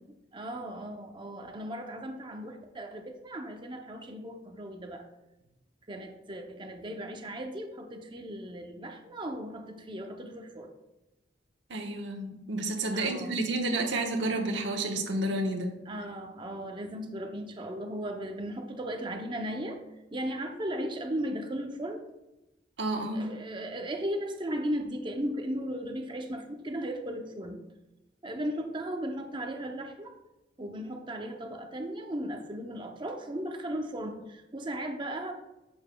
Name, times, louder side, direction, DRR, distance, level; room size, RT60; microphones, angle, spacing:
voice 1, 0.3-5.0 5.9-10.7 12.9-13.4 15.9-19.8 20.1-22.0 23.1-27.6 28.2-30.1 30.6-35.3, equal, 25° right, 4 dB, 0.6 m, -36 dB
voice 2, 11.7-15.7 22.8-23.4, right 2 dB, 75° right, 1 dB, 1.2 m, -30 dB
8.6 x 7.1 x 2.3 m, 0.98 s
head